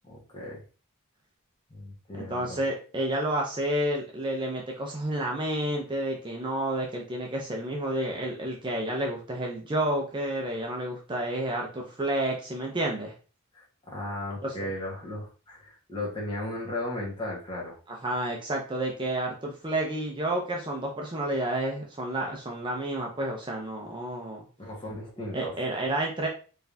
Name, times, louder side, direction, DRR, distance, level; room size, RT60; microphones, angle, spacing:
voice 1, 0.0-0.6 1.7-2.6 13.5-17.8 24.6-25.5, left 1 dB, 20° left, -3 dB, 1.5 m, -36 dB
voice 2, 2.1-13.1 14.4-14.7 17.9-24.4 25.3-26.3, right 1 dB, 20° right, 0 dB, 0.6 m, -30 dB
4.4 x 3.3 x 2.7 m, 0.36 s
head